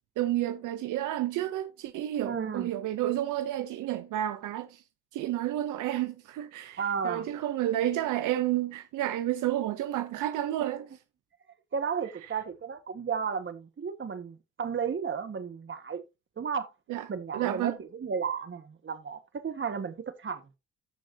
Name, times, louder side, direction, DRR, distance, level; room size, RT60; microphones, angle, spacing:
voice 1, 0.2-4.8 5.1-10.9 16.9-17.0 17.3-17.8, right 13 dB, 90° right, 0.8 m, -30 dB
voice 2, 2.2-2.7 6.8-7.3 11.7-16.0 16.4-16.7 17.1-20.4, right 6 dB, 40° right, 1.8 m, -33 dB
14.0 x 6.3 x 2.9 m
cardioid pair, 90°, 30 cm